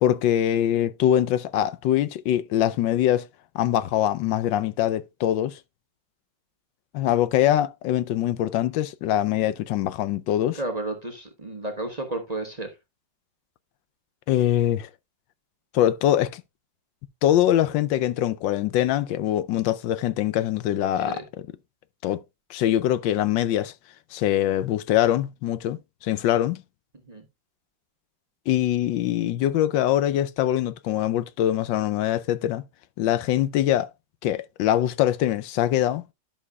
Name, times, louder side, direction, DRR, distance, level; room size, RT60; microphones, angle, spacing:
voice 1, 0.0-3.3 3.5-5.6 6.9-10.6 14.3-14.9 15.7-16.4 17.2-21.2 22.0-22.2 22.5-23.7 24.1-26.6 28.5-32.6 33.0-33.9 34.2-36.0, left 12 dB, 80° left, 1.4 m, -23 dB
voice 2, 10.5-12.7 21.1-21.2 26.9-27.2, right 2 dB, 25° right, 1.0 m, -32 dB
11.0 x 6.3 x 2.3 m
omnidirectional pair, 2.0 m